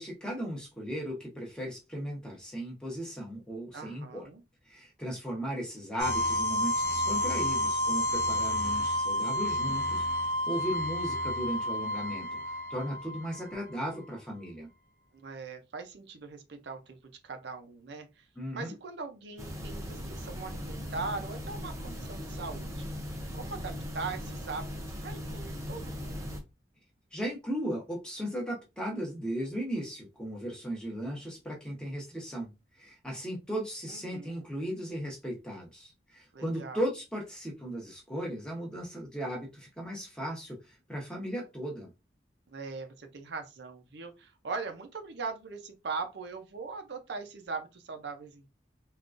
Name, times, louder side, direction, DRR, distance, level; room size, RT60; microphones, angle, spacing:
voice 1, 0.0-4.2 4.7-12.3 12.7-14.7 18.4-18.7 27.1-32.5 32.8-41.9, equal, 5° left, 0.8 m, -36 dB
voice 2, 3.7-4.4 15.1-17.0 17.2-18.3 18.5-26.4 33.9-34.5 36.3-36.8 42.5-48.5, right 4 dB, 65° right, 0.5 m, -40 dB
sound 1, 6.0-13.8, equal, 55° left, 0.8 m, -30 dB
sound 2, 19.4-26.4, equal, 15° right, 0.5 m, -39 dB
3.6 x 2.3 x 2.4 m
head